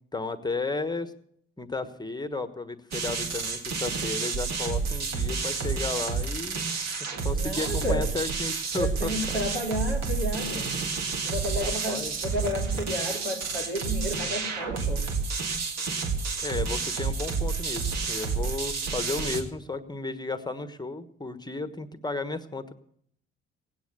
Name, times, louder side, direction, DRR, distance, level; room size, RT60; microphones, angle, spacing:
voice 1, 0.1-1.1 1.6-6.6 7.2-9.2 11.0-11.2 11.6-12.1 16.4-22.7, left 3 dB, 15° left, 11 dB, 1.3 m, -33 dB
sound 1, 2.9-19.4, right 5 dB, 55° right, 2.1 m, -30 dB
voice 2, 7.2-8.2 8.7-10.8 11.2-15.1, left 1 dB, 80° right, 0 dB, 3.0 m, -32 dB
17.5 x 9.4 x 6.7 m, 0.67 s
hypercardioid pair, 50°, 31 cm